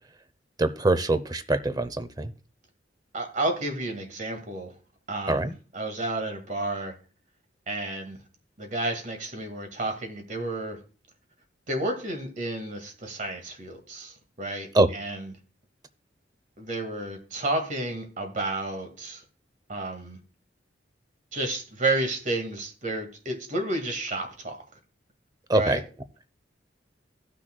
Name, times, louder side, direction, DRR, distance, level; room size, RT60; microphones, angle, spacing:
voice 1, 0.6-2.3 5.3-5.5 14.7-14.9 25.5-25.8, right 2 dB, 20° right, 12 dB, 0.6 m, -23 dB
voice 2, 3.1-4.7 5.1-5.5 5.7-6.9 7.7-8.2 8.6-10.8 11.7-15.3 16.6-19.2 19.7-20.2 21.3-24.6 25.5-25.8, right 2 dB, 45° right, 5 dB, 1.9 m, -31 dB
16.0 x 6.3 x 2.3 m, 0.37 s
head